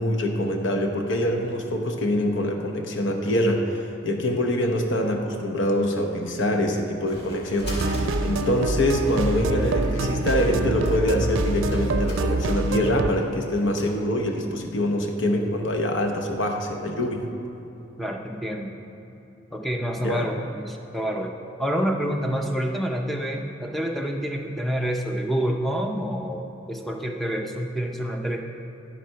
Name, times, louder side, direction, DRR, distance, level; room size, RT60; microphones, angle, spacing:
voice 1, 0.0-7.7 8.2-17.3 20.0-20.3, left 1 dB, 70° left, 3 dB, 0.9 m, -24 dB
sound 1, 6.5-13.9, equal, 30° left, 1.9 m, -42 dB
sound 2, 7.6-13.1, right 2 dB, 80° right, 0.5 m, -25 dB
voice 2, 18.0-18.7 19.5-28.4, equal, ahead, 2 dB, 0.5 m, -28 dB
12.0 x 4.1 x 5.7 m, 3.0 s
head